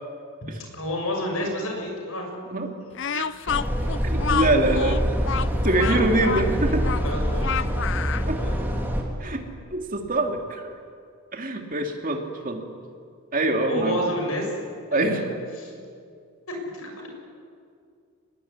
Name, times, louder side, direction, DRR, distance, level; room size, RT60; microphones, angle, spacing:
voice 1, 0.4-2.4 5.7-7.6 8.3-8.6 13.6-14.5 14.9-15.7 16.7-16.9, left 1 dB, 75° left, 1 dB, 7.1 m, -30 dB
Speech, 2.9-8.3, left 7 dB, 55° left, 0.6 m, -29 dB
sound 1, 3.5-9.0, equal, 10° right, 2.9 m, -25 dB
voice 2, 4.0-5.1 5.6-6.8 8.3-8.4 9.2-9.4 9.7-10.7 11.3-12.6 13.3-14.0 14.9-15.2, right 2 dB, 40° right, 3 dB, 2.9 m, -24 dB
24.5 x 21.0 x 9.8 m, 2.3 s
head